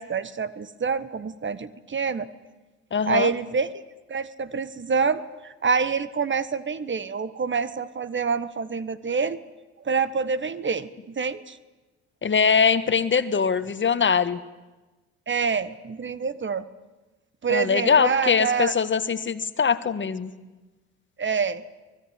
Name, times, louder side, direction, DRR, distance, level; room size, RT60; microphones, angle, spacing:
voice 1, 0.0-2.3 3.0-3.7 4.1-9.4 9.8-11.6 15.3-16.6 17.4-18.7 21.2-21.6, right 5 dB, 35° right, 16 dB, 1.4 m, -26 dB
voice 2, 2.9-3.3 12.2-14.4 17.5-20.3, left 6 dB, 35° left, 13 dB, 1.6 m, -22 dB
24.5 x 19.5 x 9.5 m, 1.1 s
hypercardioid pair, 55°, 33 cm